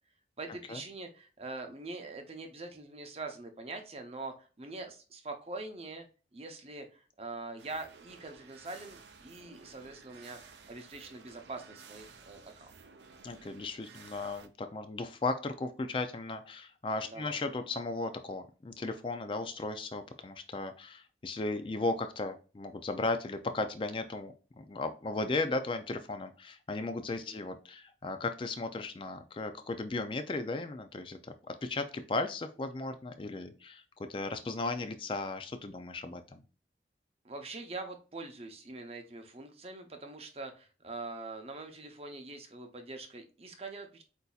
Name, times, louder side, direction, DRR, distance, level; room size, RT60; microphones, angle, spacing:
voice 1, 0.4-6.1 6.3-12.8 17.0-17.4 27.3-27.4 37.2-44.0, right 3 dB, 35° right, 5 dB, 0.7 m, -44 dB
sound 1, 7.6-14.5, right 5 dB, 80° right, 0.6 m, -55 dB
voice 2, 13.2-33.8 34.1-36.4, left 3 dB, 30° left, 8 dB, 0.3 m, -36 dB
8.1 x 2.7 x 2.3 m, 0.35 s
head